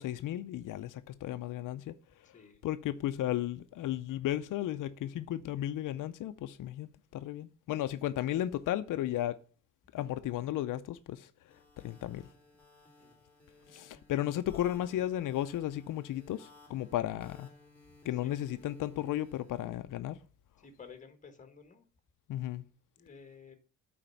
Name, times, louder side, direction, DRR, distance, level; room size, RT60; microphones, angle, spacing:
voice 1, 0.0-1.9 2.6-9.4 9.9-11.3 11.8-12.2 13.7-17.5 18.1-20.2 22.3-22.6, left 13 dB, 85° left, 0.6 m, -34 dB
voice 2, 2.3-2.7 13.0-13.2 18.2-18.3 20.6-21.8 23.0-23.5, left 5 dB, 25° left, 1.5 m, -53 dB
sound 1, 11.5-19.7, left 2 dB, 5° left, 2.6 m, -60 dB
9.0 x 4.3 x 5.7 m
wide cardioid pair, 165°, 31 cm